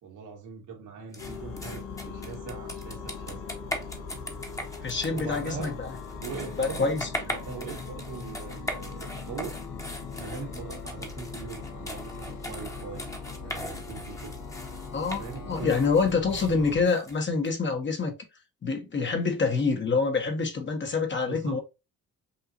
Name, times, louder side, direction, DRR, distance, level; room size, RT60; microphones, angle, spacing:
voice 1, 0.0-3.4 5.1-5.7 6.2-9.6 10.1-13.0 13.4-14.3 15.2-15.8 21.2-21.6, right 6 dB, 85° right, 1.8 m, -41 dB
sound 1, 1.1-17.5, left 1 dB, 10° left, 1.2 m, -40 dB
sound 2, 1.2-16.8, left 4 dB, 85° left, 1.2 m, -40 dB
voice 2, 4.8-5.9 6.6-7.1 14.9-18.1 18.6-21.6, left 4 dB, 40° left, 1.3 m, -26 dB
5.5 x 2.7 x 2.7 m
cardioid pair, 90°, 30 cm